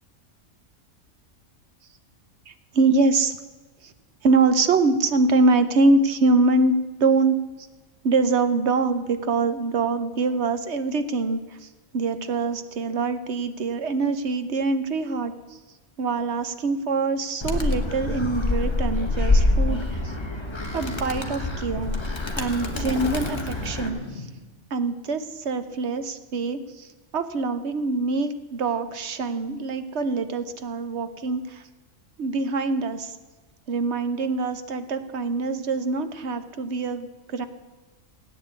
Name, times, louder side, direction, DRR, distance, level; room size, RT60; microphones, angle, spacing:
voice 1, 2.5-3.3 3.8-3.9 4.2-7.4 8.0-11.7 11.9-15.3 16.0-20.1 20.7-21.9 22.4-24.3 24.7-26.9 27.1-31.6 32.2-33.2 33.7-37.5, right 3 dB, 60° right, 11 dB, 1.3 m, -24 dB
Animal, 17.4-23.9, left 2 dB, 20° left, 1.5 m, -25 dB
sound 1, 22.6-24.6, right 1 dB, 45° left, 2.7 m, -37 dB
17.5 x 9.3 x 8.3 m, 1.3 s
omnidirectional pair, 1.3 m